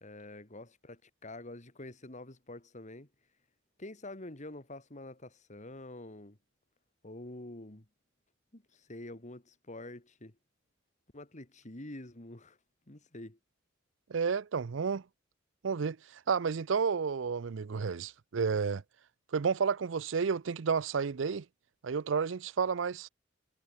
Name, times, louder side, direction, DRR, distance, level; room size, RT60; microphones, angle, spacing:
voice 1, 0.0-3.1 3.8-6.4 7.0-7.8 8.5-10.4 11.1-12.6 12.9-13.4, left 2 dB, 40° left, 2.6 m, -47 dB
voice 2, 14.1-15.0 15.6-16.0 16.3-18.8 19.3-21.4 21.8-23.1, right 5 dB, 80° right, 0.5 m, -31 dB
head